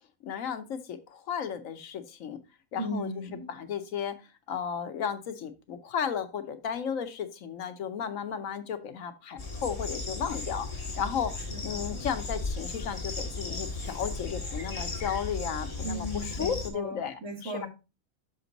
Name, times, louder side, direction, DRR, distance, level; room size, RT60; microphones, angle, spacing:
voice 1, 0.2-2.4 2.7-3.1 3.5-4.2 4.5-10.7 11.0-11.3 11.6-17.7, left 7 dB, 75° left, 9 dB, 1.2 m, -34 dB
voice 2, 2.8-3.5 11.5-12.0 15.8-17.7, equal, 65° right, -2 dB, 3.2 m, -37 dB
sound 1, 9.4-16.7, left 3 dB, 25° left, 1.6 m, -35 dB
6.2 x 6.0 x 3.9 m, 0.29 s
omnidirectional pair, 1.4 m